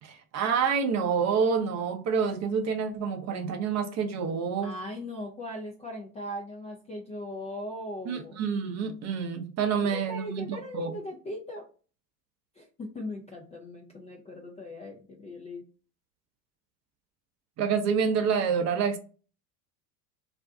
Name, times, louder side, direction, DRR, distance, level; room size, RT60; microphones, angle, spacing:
voice 1, 0.0-4.7 8.1-10.9 17.6-19.0, right 6 dB, 35° right, 0.5 m, -28 dB
voice 2, 4.6-8.4 9.8-11.6 12.6-15.6, left 1 dB, 15° left, 0.3 m, -39 dB
2.5 x 2.2 x 3.5 m
hypercardioid pair, 80°, 49 cm